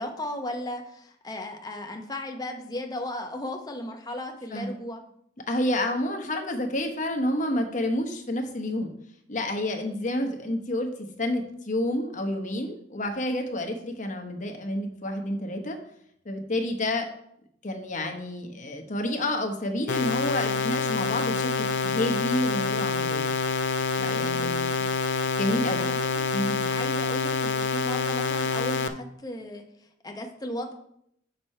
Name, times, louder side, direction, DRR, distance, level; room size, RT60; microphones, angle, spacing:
voice 1, 0.0-5.0 25.8-26.3 26.7-29.6 30.0-30.7, left 1 dB, 20° left, 3 dB, 0.8 m, -35 dB
voice 2, 5.5-8.9 9.3-15.8 16.2-17.1 17.6-23.3 24.0-24.8 25.4-25.8 26.3-26.7, left 1 dB, 40° left, 4 dB, 1.0 m, -29 dB
sound 1, 19.9-28.9, left 4 dB, 65° left, 0.5 m, -27 dB
6.5 x 6.0 x 4.3 m, 0.71 s
head